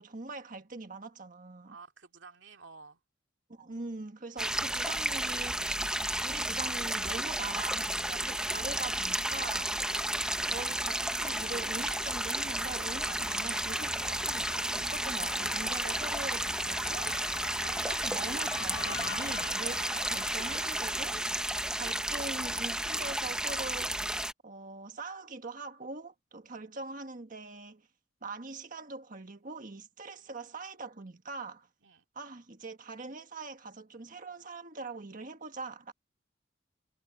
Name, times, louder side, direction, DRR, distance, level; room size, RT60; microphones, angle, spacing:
voice 1, 0.0-1.7 3.5-5.9 6.2-9.7 10.5-21.3 21.7-24.1 24.4-27.9 28.2-31.7 32.1-35.9, right 3 dB, 45° right, 1.5 m, -42 dB
voice 2, 1.7-3.0 9.8-10.2 26.4-26.7 31.8-32.0, right 4 dB, 85° right, 2.5 m, -53 dB
sound 1, 4.4-24.3, right 1 dB, 5° right, 0.8 m, -32 dB
sound 2, 5.1-21.1, left 5 dB, 75° left, 1.2 m, -47 dB
head